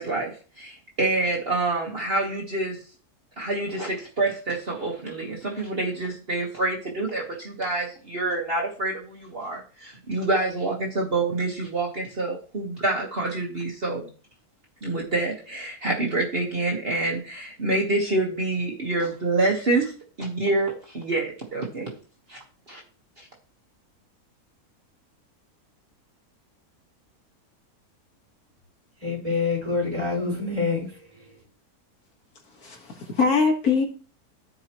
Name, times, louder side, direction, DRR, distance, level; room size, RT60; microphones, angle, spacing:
voice 1, 0.0-2.8 3.4-14.1 14.8-19.9 20.2-21.9 22.3-22.4 22.7-22.8 23.2-23.3, right 2 dB, 40° right, -1 dB, 1.6 m, -27 dB
voice 2, 29.0-31.3, left 4 dB, 20° right, -3 dB, 4.6 m, -27 dB
voice 3, 32.6-33.8, left 4 dB, 75° left, 2 dB, 2.1 m, -22 dB
14.5 x 4.8 x 3.0 m, 0.37 s
omnidirectional pair, 1.6 m